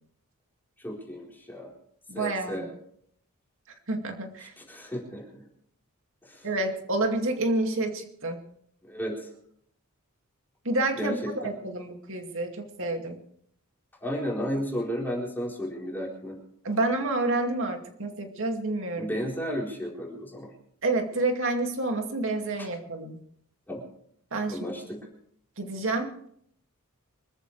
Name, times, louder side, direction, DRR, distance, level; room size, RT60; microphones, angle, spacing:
voice 1, 0.8-1.7 2.1-2.7 4.6-5.4 6.2-6.5 8.8-9.3 11.0-11.2 14.0-16.4 19.0-20.5 22.6-22.7 23.7-23.8 24.5-25.0, equal, 10° left, -3 dB, 4.1 m, -33 dB
voice 2, 2.1-2.7 3.9-4.5 6.4-8.4 10.6-13.2 16.6-19.1 20.8-23.2 24.3-24.6 25.6-26.3, right 2 dB, 60° right, 4 dB, 2.4 m, -29 dB
25.0 x 14.0 x 3.3 m, 0.66 s
head